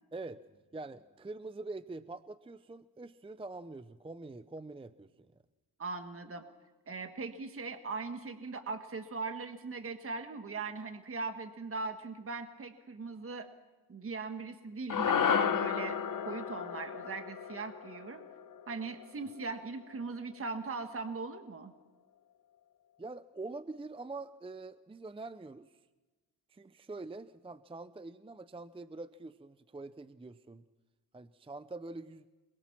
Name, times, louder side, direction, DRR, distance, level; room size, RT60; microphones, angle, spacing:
voice 1, 0.1-0.4 0.7-5.3 23.0-25.7 26.5-30.6 31.1-32.3, right 3 dB, 15° right, 13 dB, 0.6 m, -45 dB
voice 2, 5.8-6.4 6.9-13.5 13.9-16.0 16.2-18.2 18.7-21.7, right 4 dB, 30° right, 7 dB, 1.5 m, -40 dB
sound 1, 14.9-19.4, left 7 dB, 50° left, 1.1 m, -33 dB
26.5 x 22.5 x 6.0 m, 1.3 s
cardioid pair, 100°, 41 cm